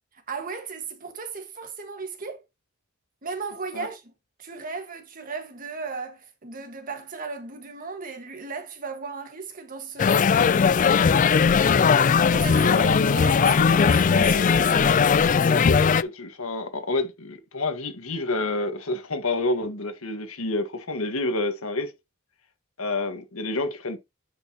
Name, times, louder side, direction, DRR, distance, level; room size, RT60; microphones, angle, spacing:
voice 1, 0.3-2.4 3.2-4.1 4.4-10.5 12.3-12.9 13.1-15.0, right 4 dB, 40° right, 1.7 m, -36 dB
sound 1, 10.0-16.0, left 6 dB, 40° left, 0.3 m, -19 dB
voice 2, 12.6-13.2 15.5-21.9 22.8-24.0, left 2 dB, 90° left, 1.6 m, -28 dB
9.8 x 5.4 x 2.9 m
head